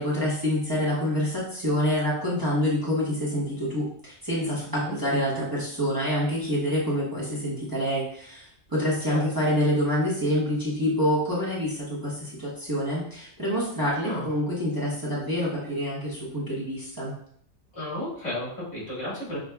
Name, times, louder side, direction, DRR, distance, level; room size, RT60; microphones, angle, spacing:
voice 1, 0.0-17.1, equal, 20° right, -7 dB, 0.9 m, -27 dB
voice 2, 17.7-19.5, left 1 dB, 85° left, -7 dB, 2.0 m, -33 dB
6.2 x 2.2 x 2.2 m, 0.64 s
omnidirectional pair, 1.2 m